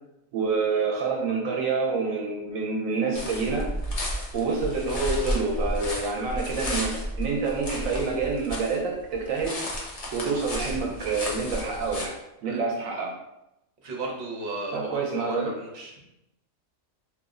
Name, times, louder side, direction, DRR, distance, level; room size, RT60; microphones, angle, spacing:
voice 1, 0.3-3.7 4.3-9.6 10.1-12.1 12.4-13.1 14.7-15.5, right 4 dB, 85° right, 0 dB, 1.0 m, -27 dB
sound 1, 3.1-8.8 9.1-12.1, equal, 45° left, 0.5 m, -32 dB
voice 2, 13.8-15.9, right 2 dB, 60° right, -2 dB, 1.0 m, -35 dB
3.0 x 2.0 x 3.6 m, 0.87 s
omnidirectional pair, 1.4 m